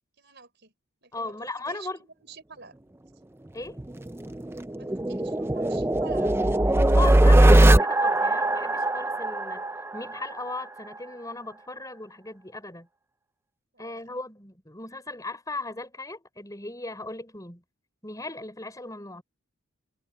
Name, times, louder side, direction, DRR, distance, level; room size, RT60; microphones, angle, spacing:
voice 1, 0.2-0.7 1.0-2.8 4.8-6.4 13.7-14.2, right 4 dB, 50° right, 5.3 m, -49 dB
voice 2, 1.1-2.0 3.5-3.8 6.9-9.6 9.9-12.9 13.8-17.6 18.0-19.2, left 2 dB, 15° left, 4.7 m, -37 dB
sound 1, 3.8-10.6, right 1 dB, 10° right, 0.5 m, -20 dB
head